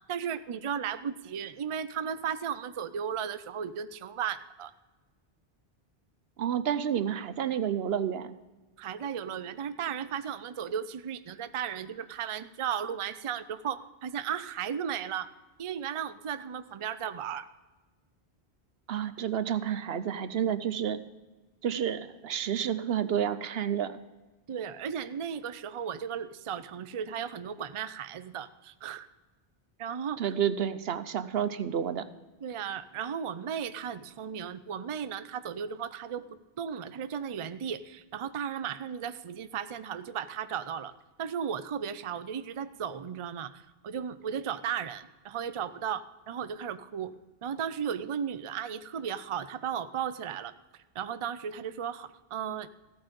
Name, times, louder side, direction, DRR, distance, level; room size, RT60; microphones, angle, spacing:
voice 1, 0.1-4.7 8.8-15.3 15.6-17.5 24.5-29.1 29.8-30.3 32.4-40.9 41.2-47.1 47.4-50.5 51.0-52.7, right 8 dB, 45° right, 13 dB, 0.4 m, -35 dB
voice 2, 6.4-8.3 18.9-21.0 21.6-24.0 30.2-32.1, right 9 dB, 75° right, 13 dB, 0.9 m, -30 dB
15.0 x 8.9 x 5.2 m, 1.2 s
omnidirectional pair, 1.0 m